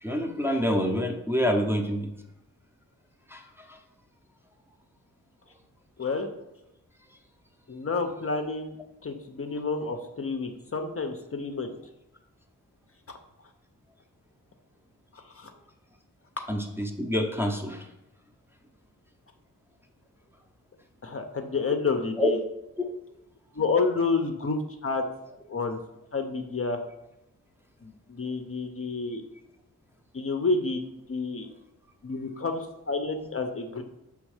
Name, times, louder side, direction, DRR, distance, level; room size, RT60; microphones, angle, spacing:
voice 1, 0.0-2.1 3.3-3.8 16.5-17.9 22.2-22.3 22.8-22.9, left 1 dB, 5° right, 0 dB, 0.7 m, -27 dB
voice 2, 6.0-6.3 7.7-11.8 13.1-13.2 15.1-15.5 21.0-22.4 23.5-25.0 25.5-25.8 26.1-26.8 27.8-29.2 30.1-30.8 31.1-31.5 32.0-33.8, left 4 dB, 40° left, 5 dB, 0.6 m, -29 dB
6.3 x 3.5 x 4.8 m, 0.88 s
wide cardioid pair, 95°, 34 cm